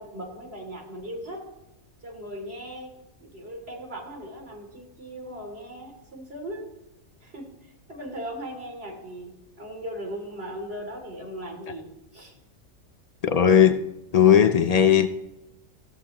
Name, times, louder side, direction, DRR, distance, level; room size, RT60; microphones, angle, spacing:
voice 1, 0.0-1.4 2.0-2.9 3.2-6.7 7.2-11.9 12.1-12.3, equal, 45° right, 3.1 m, -38 dB
voice 2, 13.2-13.8 14.1-15.1, left 8 dB, 85° left, 0.3 m, -17 dB
16.5 x 13.5 x 3.0 m
omnidirectional pair, 1.4 m